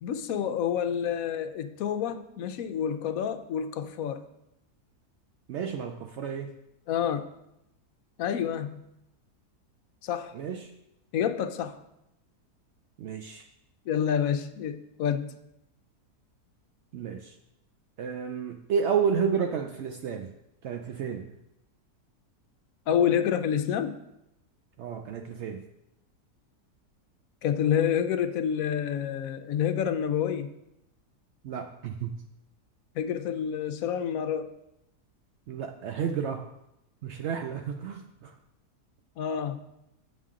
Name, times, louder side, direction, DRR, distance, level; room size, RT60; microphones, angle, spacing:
voice 1, 0.0-4.2 6.9-7.3 8.2-8.8 10.0-10.4 11.1-11.8 13.9-15.3 22.9-24.0 27.4-30.5 32.9-34.5 39.2-39.6, left 8 dB, 70° left, 9 dB, 0.9 m, -28 dB
voice 2, 5.5-6.5 10.3-10.7 13.0-13.4 16.9-17.4 18.0-20.3 20.6-21.3 24.8-25.7 31.4-32.2 35.5-36.5 37.0-38.3, right 7 dB, 80° right, 4 dB, 0.6 m, -31 dB
8.3 x 7.2 x 3.7 m, 0.85 s
omnidirectional pair, 1.7 m